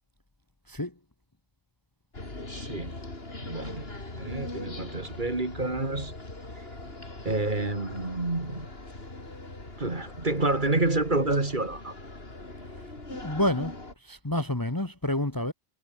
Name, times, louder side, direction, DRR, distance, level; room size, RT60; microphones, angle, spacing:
sound 1, 2.1-13.9, left 2 dB, 50° left, 4.4 m, -41 dB
voice 1, 2.5-3.0 3.4-3.9 4.1-6.2 7.2-8.7 9.8-11.9, right 2 dB, 40° right, 2.7 m, -28 dB
voice 2, 13.1-13.7 14.0-15.5, left 1 dB, 15° left, 1.5 m, -28 dB
omnidirectional pair, 1.3 m